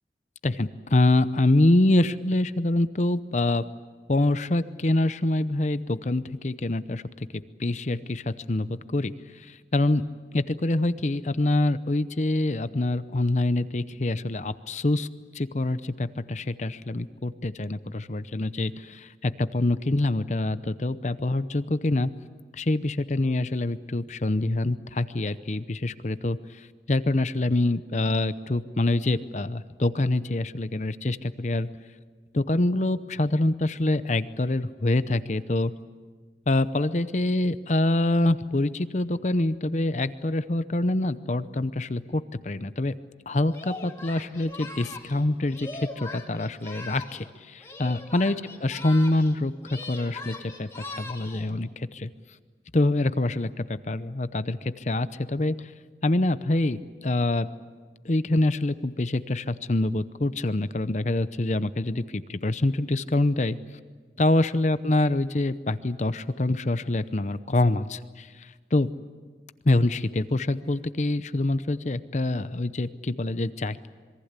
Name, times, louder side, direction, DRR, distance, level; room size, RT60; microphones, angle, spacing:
voice 1, 0.4-3.6 4.1-7.0 7.3-10.0 10.3-15.1 15.3-22.1 22.5-31.7 32.3-35.7 36.5-42.9 43.3-52.1 52.7-55.7 56.0-57.5 58.0-63.6 64.2-68.9 69.6-73.9, left 2 dB, 40° left, 13 dB, 0.7 m, -25 dB
Singing, 43.5-47.3 47.6-49.4 49.6-51.5, left 2 dB, 15° left, 2.3 m, -40 dB
27.0 x 22.5 x 8.2 m, 1.5 s
head